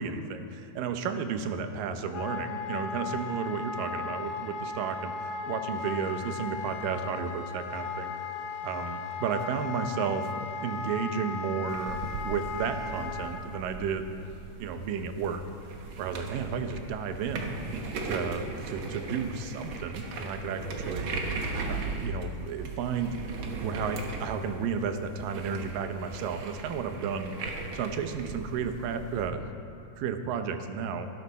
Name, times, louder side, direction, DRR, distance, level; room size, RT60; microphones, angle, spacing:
voice 1, 0.0-8.1 8.6-10.3 10.6-14.0 14.6-15.4 16.0-17.5 18.0-21.1 21.7-23.2 23.6-27.4 27.7-29.5 30.0-31.1, right 6 dB, 90° right, 8 dB, 2.5 m, -33 dB
Wind instrument woodwind instrument, 2.1-13.4, left 5 dB, 65° left, 1.9 m, -36 dB
sound 1, 11.7-29.3, right 3 dB, 65° right, 1.2 m, -38 dB
17.5 x 10.5 x 4.2 m, 2.9 s
omnidirectional pair, 3.8 m